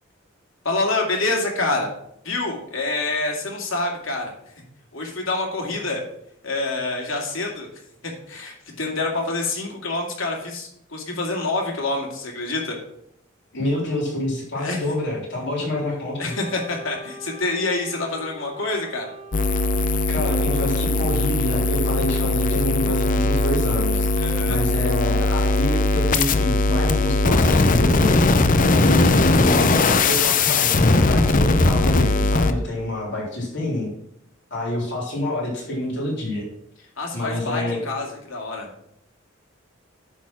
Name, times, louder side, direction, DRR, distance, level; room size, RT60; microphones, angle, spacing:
voice 1, 0.6-1.9 2.2-4.3 4.9-6.0 6.4-7.7 8.0-12.8 14.5-14.8 16.2-19.1 24.2-24.6 37.0-38.7, left 2 dB, 90° left, 0 dB, 2.4 m, -27 dB
voice 2, 13.5-16.3 20.1-24.1 24.5-28.1 28.7-33.9 34.5-36.5 37.1-37.8, left 1 dB, 60° left, -4 dB, 3.7 m, -27 dB
Wind instrument woodwind instrument, 16.3-20.3, equal, 85° right, 2.1 m, -42 dB
sound 1, 19.3-32.5, left 2 dB, 40° left, 0.6 m, -19 dB
10.0 x 4.2 x 6.0 m, 0.73 s
head